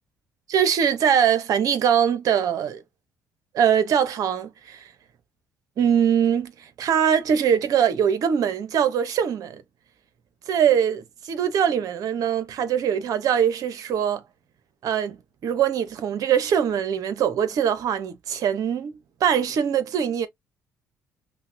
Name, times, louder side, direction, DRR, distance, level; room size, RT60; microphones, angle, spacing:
voice 1, 0.5-2.8 3.5-4.9 5.8-9.6 10.5-14.2 14.8-20.3, right 8 dB, 60° right, 0.8 m, -22 dB
5.5 x 2.2 x 2.6 m
hypercardioid pair, 60°, 7 cm